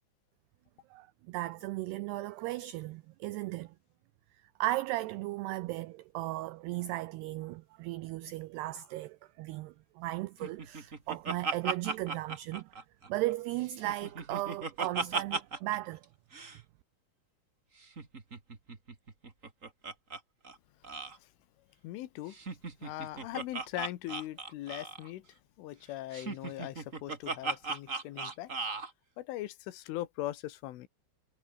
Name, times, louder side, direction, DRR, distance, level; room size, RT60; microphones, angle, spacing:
voice 1, 0.9-3.7 4.6-12.7 13.1-16.0, right 17 dB, 90° right, 2.3 m, -36 dB
Laughter, 10.4-13.3 13.7-16.0 16.3-16.6 17.8-20.2 20.4-20.6 20.8-21.2 22.3-25.1 26.1-28.9, right 4 dB, 30° right, 1.6 m, -37 dB
voice 2, 21.8-22.4 22.8-25.3 25.6-28.5 29.2-30.9, left 15 dB, 90° left, 3.9 m, -40 dB
omnidirectional pair, 5.5 m